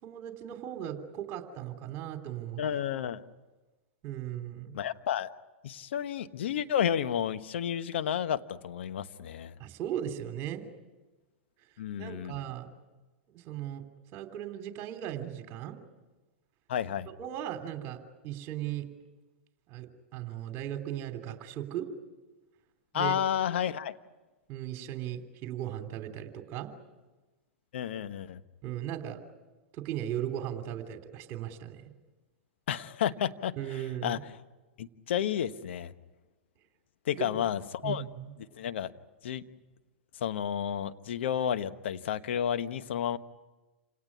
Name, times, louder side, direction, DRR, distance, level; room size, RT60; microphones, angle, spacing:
voice 1, 0.0-2.6 4.0-4.7 9.6-10.6 12.0-12.7 13.3-13.8 14.1-15.8 17.1-18.0 18.2-18.8 19.7-19.9 20.1-21.9 22.9-23.2 24.5-26.7 28.6-29.2 29.7-31.9 33.6-34.2 37.1-37.4 37.8-38.3, right 11 dB, 40° right, 7 dB, 3.2 m, -37 dB
voice 2, 2.6-3.2 4.7-5.3 5.6-9.5 11.8-12.3 16.7-17.1 22.9-23.9 27.7-28.4 32.7-34.2 34.8-35.9 37.0-38.1 38.5-38.9 39.2-39.4 40.2-43.2, left 9 dB, 70° left, 11 dB, 1.2 m, -31 dB
28.0 x 18.0 x 9.8 m, 1.2 s
hypercardioid pair, 110°, 7 cm